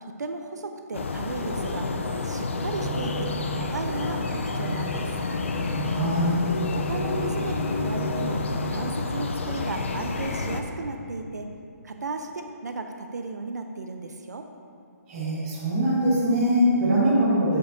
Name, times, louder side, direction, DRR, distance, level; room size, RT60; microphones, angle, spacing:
voice 1, 0.0-1.9 2.2-5.1 6.7-8.4 8.7-11.5 11.8-14.5, right 3 dB, 85° right, 5 dB, 0.7 m, -35 dB
sound 1, 0.9-10.6, left 3 dB, 45° left, 0.6 m, -29 dB
sound 2, 2.4-9.3, right 3 dB, 15° left, 1.2 m, -37 dB
voice 2, 5.8-6.3 15.1-17.6, right 1 dB, 15° right, -9 dB, 1.7 m, -22 dB
16.0 x 5.4 x 2.7 m, 2.4 s
hypercardioid pair, 175°, 9 cm